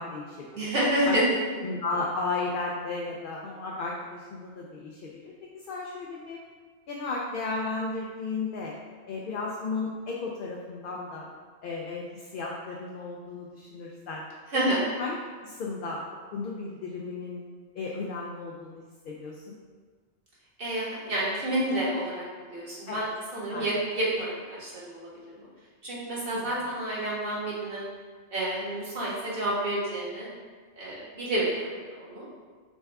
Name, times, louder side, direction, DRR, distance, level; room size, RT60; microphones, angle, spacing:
voice 1, 0.0-0.7 1.1-1.2 1.6-6.4 6.9-8.7 9.1-11.3 11.6-14.2 14.5-14.7 15.0-15.2 15.4-16.0 16.3-17.4 17.7-19.5 22.9-23.0 23.5-23.7 26.3-26.5, left 3 dB, 60° left, -2 dB, 0.6 m, -34 dB
voice 2, 0.5-1.4 14.5-14.8 20.6-23.1 23.3-25.5 25.8-27.9 28.3-30.3 30.7-32.3, right 1 dB, 50° right, -6 dB, 1.5 m, -29 dB
6.5 x 2.3 x 3.4 m, 1.5 s
omnidirectional pair, 1.2 m